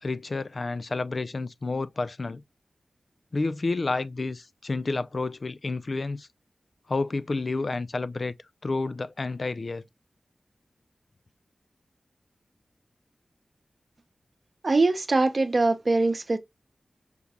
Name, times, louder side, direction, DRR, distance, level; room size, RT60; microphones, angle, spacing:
voice 1, 0.0-2.4 3.3-6.3 6.9-8.3 8.6-9.8, left 3 dB, 55° left, 0.4 m, -30 dB
voice 2, 14.6-16.4, right 3 dB, 55° right, 0.8 m, -22 dB
5.2 x 2.2 x 2.8 m
cardioid pair, 50°, 0 cm